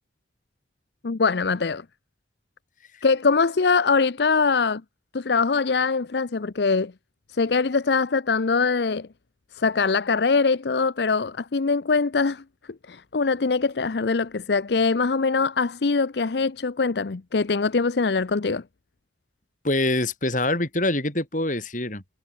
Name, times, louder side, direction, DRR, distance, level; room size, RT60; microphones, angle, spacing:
voice 1, 1.0-1.8 3.0-4.8 5.1-6.9 7.3-9.1 9.5-12.4 12.9-18.6, left 4 dB, 70° left, 0.6 m, -22 dB
voice 2, 19.6-22.0, left 2 dB, 45° left, 6.1 m, -24 dB
head